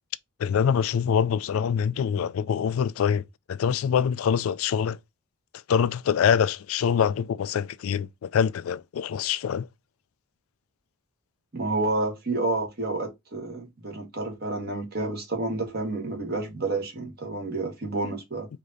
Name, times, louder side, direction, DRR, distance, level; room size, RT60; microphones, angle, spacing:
voice 1, 0.4-5.0 5.7-9.7, left 7 dB, 90° left, 0.3 m, -25 dB
voice 2, 11.5-18.5, right 2 dB, 50° right, 1.6 m, -29 dB
4.9 x 2.8 x 3.8 m
head